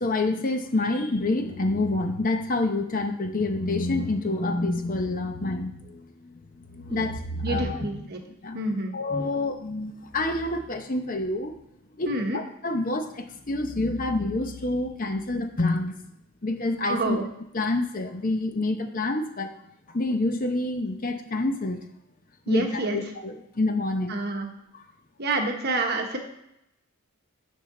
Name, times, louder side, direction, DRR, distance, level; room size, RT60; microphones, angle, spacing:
voice 1, 0.0-8.1 8.4-11.5 11.9-15.9 16.4-17.2 17.5-19.5 19.9-21.8 22.5-24.2, left 2 dB, 40° left, 6 dB, 0.8 m, -27 dB
voice 2, 7.4-8.2 8.5-8.9 12.1-12.4 16.8-17.3 22.5-23.0 24.1-24.5 25.2-26.2, right 2 dB, 45° right, 3 dB, 1.1 m, -28 dB
9.7 x 5.7 x 3.8 m, 0.81 s
head